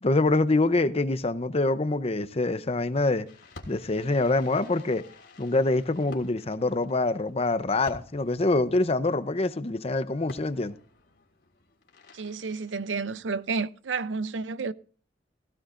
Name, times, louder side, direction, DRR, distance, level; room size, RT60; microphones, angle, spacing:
voice 1, 0.0-3.3 3.7-5.0 5.4-10.7, left 2 dB, 35° left, 0.7 m, -25 dB
Fireworks, 3.2-13.5, left 2 dB, 70° left, 3.0 m, -51 dB
voice 2, 12.1-14.7, right 4 dB, 85° right, 0.6 m, -31 dB
17.0 x 15.5 x 2.6 m
head